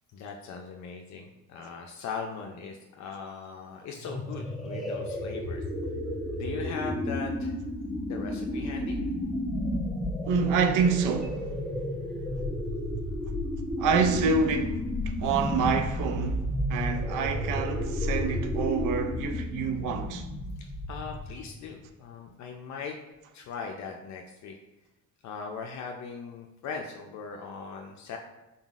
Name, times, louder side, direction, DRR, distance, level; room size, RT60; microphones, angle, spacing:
voice 1, 0.1-5.6 6.3-7.6 8.1-9.0 20.6-23.0 23.3-24.6 25.2-28.2, left 5 dB, 65° left, 0.5 m, -39 dB
sound 1, 4.0-21.5, left 1 dB, ahead, 0.8 m, -32 dB
voice 2, 10.3-11.5 13.8-14.8 15.2-20.3, right 5 dB, 90° right, 0.5 m, -27 dB
4.0 x 3.9 x 2.4 m
cardioid pair, 90°, 30 cm